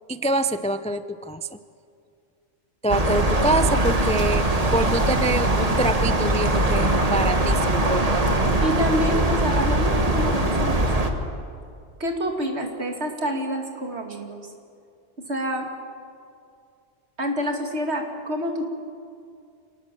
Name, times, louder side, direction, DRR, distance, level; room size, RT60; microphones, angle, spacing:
voice 1, 0.1-1.6 2.8-8.3, right 1 dB, 10° left, 11 dB, 0.3 m, -26 dB
sound 1, 2.9-11.1, right 1 dB, 30° right, 1.7 m, -21 dB
voice 2, 8.5-11.1 12.0-14.4 15.3-15.7 17.2-18.6, equal, 65° right, 3 dB, 2.8 m, -27 dB
26.5 x 19.0 x 7.6 m, 2.3 s
omnidirectional pair, 1.2 m